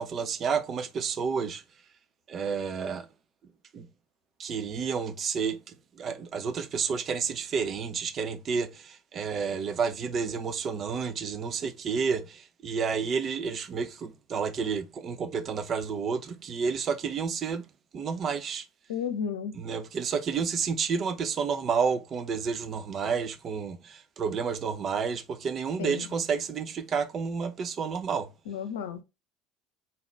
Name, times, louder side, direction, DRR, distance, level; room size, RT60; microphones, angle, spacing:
voice 1, 0.0-1.6 2.3-3.1 3.7-3.9 4.4-17.6 17.9-18.7 19.5-28.3, right 6 dB, 40° right, 0.7 m, -30 dB
voice 2, 18.9-19.6 25.8-26.0 28.5-29.0, left 7 dB, 70° left, 0.6 m, -32 dB
4.2 x 3.9 x 3.2 m
figure-of-eight pair, 65°, 0 cm